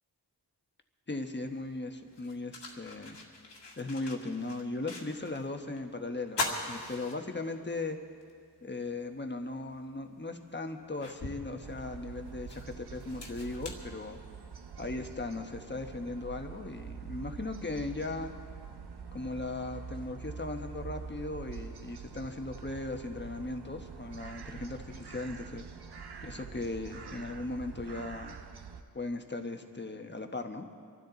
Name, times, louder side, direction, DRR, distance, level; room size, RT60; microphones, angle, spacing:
voice 1, 1.1-3.2 3.8-8.0 8.6-14.2 14.8-18.3 19.1-25.7 26.2-28.4 28.9-30.7, left 2 dB, 25° left, 5 dB, 1.2 m, -38 dB
sound 1, 1.5-1.6 2.1-5.5 5.8-5.9 6.3-7.7 8.2-8.3 9.7-9.8 10.4-14.6, left 2 dB, 90° left, 2.0 m, -41 dB
sound 2, 11.6-28.8, right 6 dB, 70° right, 1.0 m, -45 dB
25.0 x 13.0 x 4.0 m, 2.2 s
wide cardioid pair, 95°, 41 cm